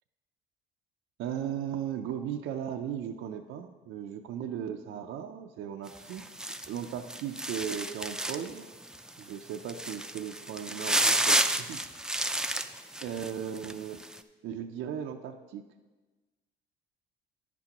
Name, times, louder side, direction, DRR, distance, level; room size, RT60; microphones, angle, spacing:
voice 1, 1.2-6.2 6.7-8.7 9.2-11.8 12.1-12.3 13.0-14.0 14.4-15.6, right 9 dB, 90° right, 3 dB, 0.5 m, -37 dB
sound 1, 5.9-8.6 8.9-9.1 9.5-13.7 14.0-14.2, right 1 dB, 5° right, 0.4 m, -30 dB
10.5 x 8.3 x 2.9 m, 1.2 s
cardioid pair, 90°, 20 cm